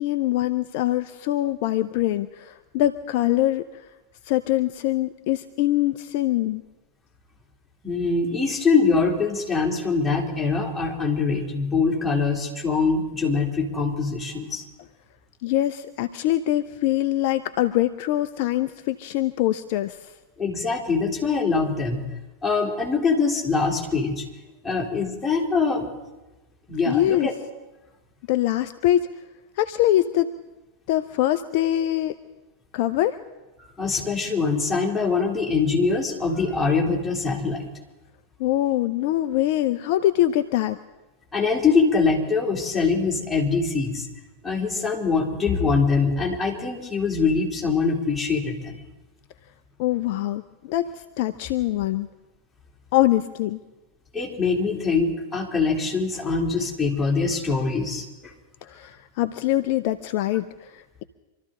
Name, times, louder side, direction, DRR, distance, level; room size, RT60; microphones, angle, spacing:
voice 1, 0.0-3.9 4.2-6.6 15.4-20.1 26.9-27.3 28.3-29.1 29.6-30.3 30.9-32.2 32.7-33.2 38.4-40.8 49.8-50.9 51.2-52.1 52.9-53.6 58.6-61.0, left 14 dB, 50° left, 11 dB, 0.6 m, -23 dB
voice 2, 7.8-14.6 20.4-22.0 22.4-24.2 24.6-25.9 26.7-27.3 33.8-37.6 41.3-44.1 44.4-48.8 54.1-58.3, left 4 dB, 10° left, -2 dB, 3.5 m, -23 dB
26.0 x 13.5 x 3.9 m, 1.1 s
figure-of-eight pair, 90°, 0 cm